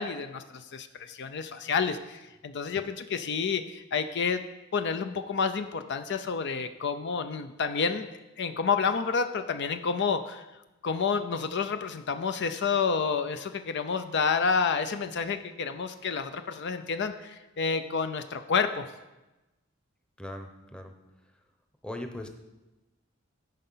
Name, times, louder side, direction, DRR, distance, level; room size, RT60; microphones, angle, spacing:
voice 1, 0.0-4.4 4.7-8.1 8.4-10.4 10.8-18.9, left 5 dB, 55° left, 9 dB, 0.5 m, -29 dB
voice 2, 20.2-20.9 21.8-22.3, left 1 dB, 5° left, 4 dB, 0.8 m, -39 dB
13.0 x 5.5 x 5.6 m, 1.1 s
head